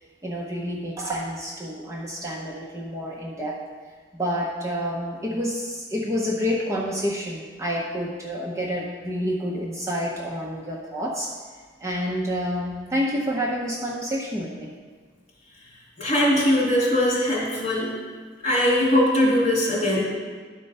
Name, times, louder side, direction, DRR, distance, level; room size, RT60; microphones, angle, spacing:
voice 1, 0.2-3.6 4.2-11.3 11.8-14.7, equal, 15° right, -3 dB, 0.8 m, -28 dB
voice 2, 16.0-17.9 18.4-20.0, left 1 dB, 40° left, -6 dB, 2.8 m, -21 dB
11.0 x 4.4 x 5.4 m, 1.5 s
head